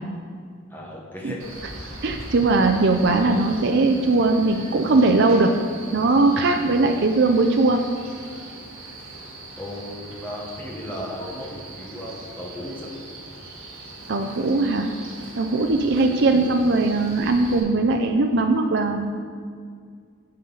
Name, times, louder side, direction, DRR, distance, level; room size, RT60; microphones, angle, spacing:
voice 1, 0.7-1.4 1.8-1.9 6.4-6.6 9.5-13.0 15.7-16.4 17.2-17.3, left 1 dB, 10° left, -3 dB, 1.2 m, -36 dB
Male speech man speaking, 1.4-17.6, right 2 dB, 70° right, 1.6 m, -40 dB
voice 2, 2.0-5.5 5.9-7.8 14.1-14.9 15.4-19.1, right 3 dB, 50° right, 4 dB, 0.4 m, -20 dB
9.5 x 6.5 x 4.0 m, 2.1 s
head